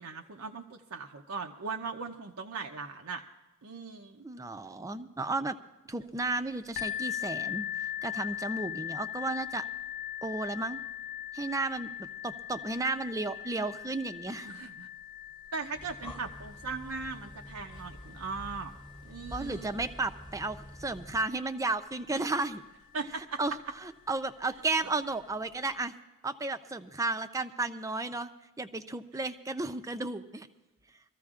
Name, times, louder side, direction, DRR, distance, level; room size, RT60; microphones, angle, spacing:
voice 1, 0.0-3.2 3.6-4.3 14.4-14.9 15.5-18.7 19.0-19.8 22.9-23.4, right 4 dB, 90° right, 2 dB, 0.7 m, -39 dB
voice 2, 4.2-5.6 5.9-7.7 8.0-9.6 10.2-10.8 11.3-14.5 19.3-22.6 23.1-25.9 26.2-28.3 28.6-30.5, right 3 dB, 15° right, 9 dB, 0.5 m, -33 dB
sound 1, 6.8-22.3 23.1-23.2 23.7-23.8, left 11 dB, 45° left, 0.4 m, -41 dB
Breathing, 15.6-21.4, equal, 25° left, 1.1 m, -47 dB
23.5 x 14.5 x 2.4 m, 1.1 s
head